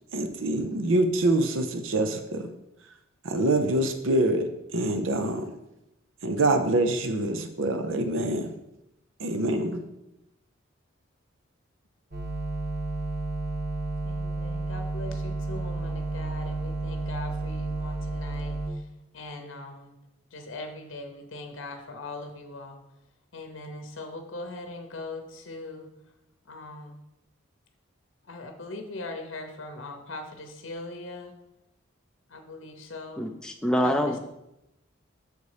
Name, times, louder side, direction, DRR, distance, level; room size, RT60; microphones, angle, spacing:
voice 1, 0.1-2.5 3.2-5.5 6.2-8.5 9.2-9.8, right 2 dB, 80° right, 7 dB, 0.6 m, -25 dB
sound 1, 12.1-18.7, right 2 dB, 50° right, 1.1 m, -31 dB
voice 2, 14.0-18.6 19.1-19.9 20.3-22.8 23.3-25.9 26.5-27.0 28.3-31.3 32.3-33.3 33.8-34.2, left 2 dB, 70° left, 5 dB, 0.8 m, -40 dB
voice 3, 33.2-34.2, equal, 5° left, 3 dB, 0.4 m, -25 dB
6.7 x 4.1 x 4.9 m, 0.88 s
head